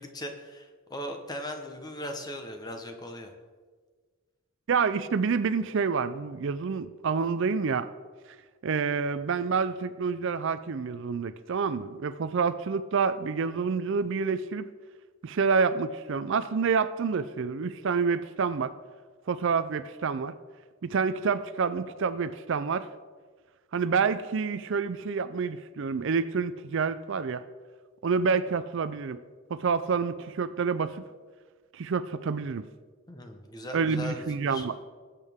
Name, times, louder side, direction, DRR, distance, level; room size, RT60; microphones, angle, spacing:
voice 1, 0.0-3.3 33.1-34.7, left 1 dB, 20° left, 5 dB, 1.1 m, -38 dB
voice 2, 4.7-7.9 8.6-14.7 15.2-18.7 19.3-20.3 20.8-22.9 23.7-27.4 28.0-29.2 29.5-31.0 31.7-32.6 33.7-34.8, right 5 dB, 55° right, 13 dB, 0.4 m, -28 dB
18.5 x 8.3 x 3.6 m, 1.5 s
head